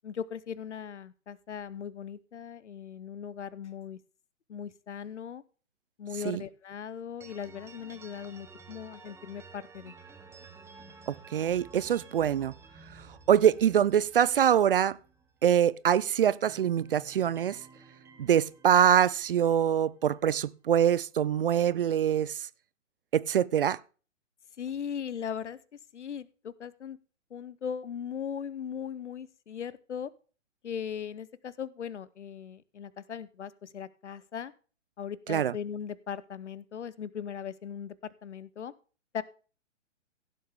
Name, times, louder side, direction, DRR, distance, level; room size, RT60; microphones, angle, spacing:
voice 1, 0.0-4.0 4.5-5.4 6.0-9.9 24.6-25.6 25.9-27.0 27.3-30.1 30.6-34.5 35.0-38.7 39.1-39.2, left 8 dB, 65° left, 0.9 m, -39 dB
sound 1, 7.2-15.9 16.2-20.3, right 4 dB, 5° right, 0.9 m, -53 dB
voice 2, 11.3-12.5 13.3-15.0 15.4-17.6 18.2-22.4 23.1-23.8 35.3-35.5, right 9 dB, 50° right, 0.5 m, -24 dB
16.0 x 7.6 x 3.5 m
figure-of-eight pair, 125°, 37 cm